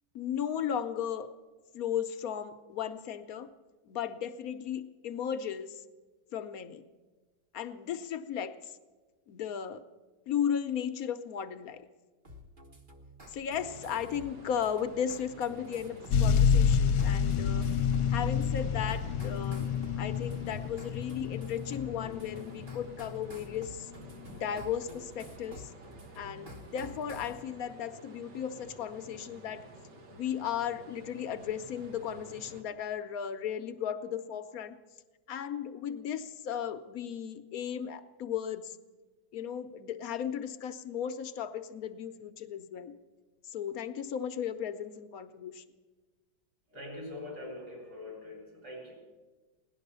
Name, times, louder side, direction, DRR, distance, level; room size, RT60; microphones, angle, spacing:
voice 1, 0.1-1.3 1.7-3.5 3.9-5.8 6.3-6.8 7.5-8.8 9.3-9.8 10.3-11.9 13.3-17.7 18.1-23.9 24.3-25.7 26.2-29.6 30.1-34.8 35.3-38.8 39.3-42.9 43.4-45.6, left 8 dB, 65° left, 10 dB, 1.0 m, -35 dB
sound 1, 12.2-27.4, left 1 dB, 30° right, 1.2 m, -51 dB
sound 2, 13.5-32.6, right 1 dB, 75° right, 2.1 m, -51 dB
sound 3, 16.1-23.6 24.3-24.4, left 7 dB, 80° left, 1.3 m, -28 dB
voice 2, 46.7-49.0, left 2 dB, 60° right, -1 dB, 4.1 m, -43 dB
17.5 x 11.5 x 6.7 m, 1.3 s
omnidirectional pair, 1.9 m